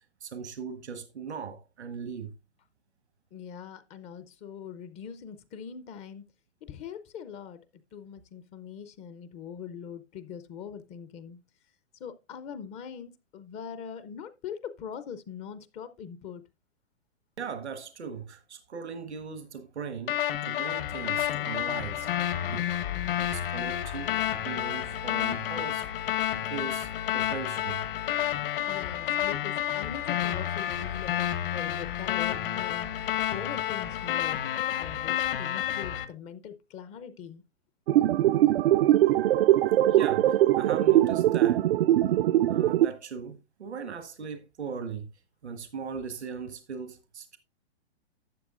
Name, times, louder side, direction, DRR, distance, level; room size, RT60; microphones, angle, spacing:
voice 1, 0.2-2.3 17.4-22.1 22.5-22.7 23.2-25.9 26.5-27.8 39.9-41.7 42.5-45.1 45.4-47.4, right 6 dB, 90° right, 1.4 m, -39 dB
voice 2, 3.3-6.2 6.6-7.6 7.9-11.4 12.0-16.4 28.7-33.0 33.3-34.4 34.8-37.4, left 7 dB, 20° left, 0.5 m, -42 dB
sound 1, 20.1-36.0, left 11 dB, 55° left, 1.3 m, -30 dB
sound 2, 37.9-42.9, right 14 dB, 60° right, 0.5 m, -21 dB
12.0 x 7.9 x 2.4 m
hypercardioid pair, 135°, 33 cm